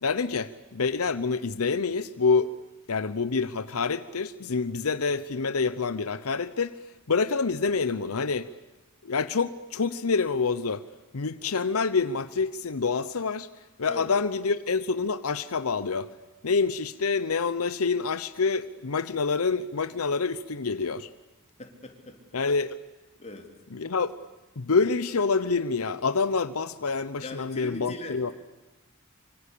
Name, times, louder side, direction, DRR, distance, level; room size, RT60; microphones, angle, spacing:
voice 1, 0.0-2.5 2.9-6.8 7.1-8.5 9.0-10.8 11.1-13.5 13.8-16.1 16.4-21.1 22.3-22.8 23.7-24.1 24.6-28.3, left 4 dB, 85° left, 13 dB, 0.8 m, -27 dB
voice 2, 21.6-22.2 23.2-23.5 27.2-28.3, left 2 dB, 30° left, 3 dB, 3.7 m, -40 dB
25.5 x 25.0 x 8.5 m, 1.1 s
head